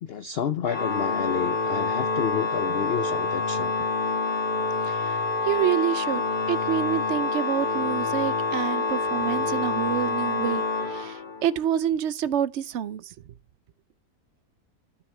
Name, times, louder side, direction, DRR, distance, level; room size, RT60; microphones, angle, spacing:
voice 1, 0.0-3.7, left 8 dB, 85° left, 0.5 m, -30 dB
Organ, 0.7-11.6, left 3 dB, 35° left, 1.4 m, -27 dB
voice 2, 4.9-5.2 5.4-6.2 6.5-10.6 10.9-13.0, right 10 dB, 65° right, 0.7 m, -27 dB
14.5 x 6.4 x 3.3 m
omnidirectional pair, 1.8 m